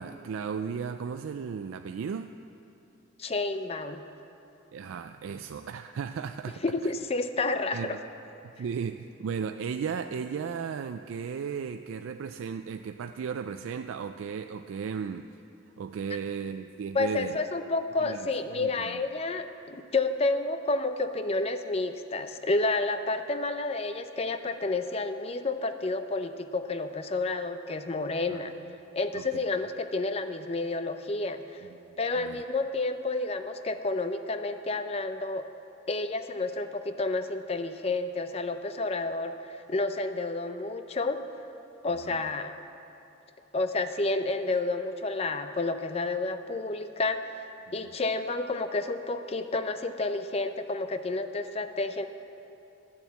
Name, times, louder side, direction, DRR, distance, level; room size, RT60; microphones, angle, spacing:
voice 1, 0.0-2.3 4.7-6.9 7.7-8.0 8.6-15.3 15.8-17.4 18.0-19.0 28.3-28.6 29.1-29.3 31.6-31.8 32.2-32.4 42.0-42.3 47.7-47.9, right 6 dB, 85° right, 8 dB, 0.3 m, -35 dB
voice 2, 3.2-4.0 6.6-8.0 16.9-28.5 28.9-31.7 32.0-35.4 35.9-41.2 41.8-42.5 43.5-47.2 47.7-52.1, left 3 dB, 30° left, 9 dB, 0.5 m, -30 dB
12.0 x 7.2 x 8.1 m, 2.8 s
head